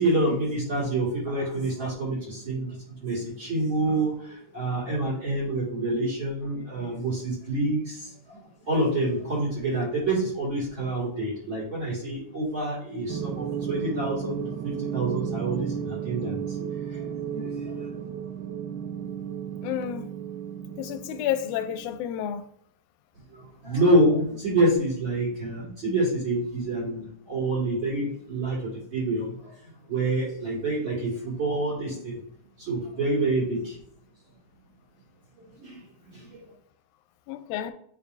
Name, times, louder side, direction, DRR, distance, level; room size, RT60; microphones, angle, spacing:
voice 1, 0.0-17.9 23.3-32.2 32.6-33.8 35.4-36.5, right 1 dB, 40° right, 2.7 m, -27 dB
sound 1, 13.1-22.0, right 8 dB, 85° right, 2.0 m, -33 dB
voice 2, 19.6-20.1 20.8-22.4 37.3-37.7, left 10 dB, 85° left, 2.0 m, -30 dB
9.3 x 4.6 x 2.6 m
omnidirectional pair, 3.5 m